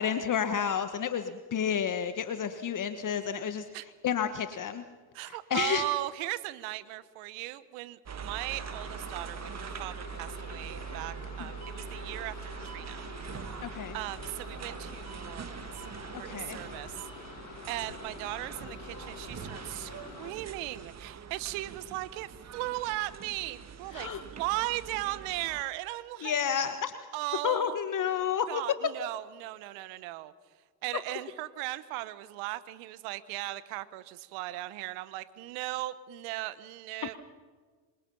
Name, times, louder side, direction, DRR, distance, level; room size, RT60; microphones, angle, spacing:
voice 1, 0.0-3.6 4.0-4.8 5.2-5.8 11.4-11.5 13.6-14.0 16.2-16.6 23.9-24.2 26.2-26.9 27.4-28.5, left 8 dB, 40° left, 10 dB, 1.4 m, -30 dB
voice 2, 5.1-12.3 12.7-13.0 13.3-15.6 16.2-16.9 17.7-19.9 20.2-26.4 27.1-27.8 28.5-30.3 30.8-37.2, right 17 dB, 65° right, 15 dB, 1.5 m, -37 dB
sound 1, 8.1-25.6, right 7 dB, 30° right, 1.8 m, -43 dB
sound 2, 8.5-20.3, left 10 dB, 70° left, 2.1 m, -48 dB
26.5 x 24.5 x 5.7 m, 1.5 s
hypercardioid pair, 70°, 50 cm